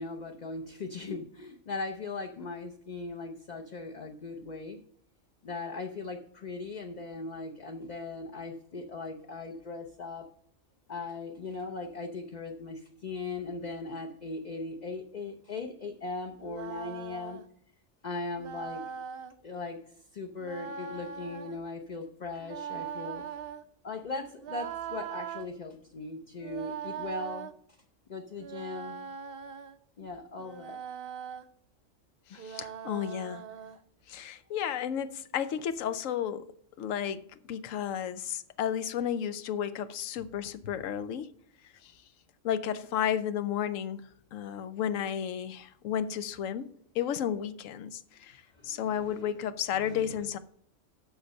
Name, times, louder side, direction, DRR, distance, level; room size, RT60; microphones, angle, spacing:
voice 1, 0.0-4.8 5.4-10.3 10.9-17.4 18.0-18.8 19.4-19.8 20.1-23.3 23.8-27.5 28.1-29.0 30.0-30.8 32.3-32.4 48.5-49.3 49.7-50.0, left 3 dB, 45° left, 0.7 m, -39 dB
sound 1, 16.4-17.5 18.4-19.3 20.4-21.6 22.4-23.6 24.4-25.5 26.4-27.5 28.4-29.8 30.4-31.5 32.4-33.8, right 7 dB, 60° right, 0.7 m, -40 dB
voice 2, 32.3-33.4 34.1-36.5 36.8-41.3 41.8-41.9 42.4-44.0 44.3-46.7 46.9-50.4, left 9 dB, 80° left, 1.0 m, -33 dB
7.0 x 6.3 x 6.4 m
omnidirectional pair, 1.3 m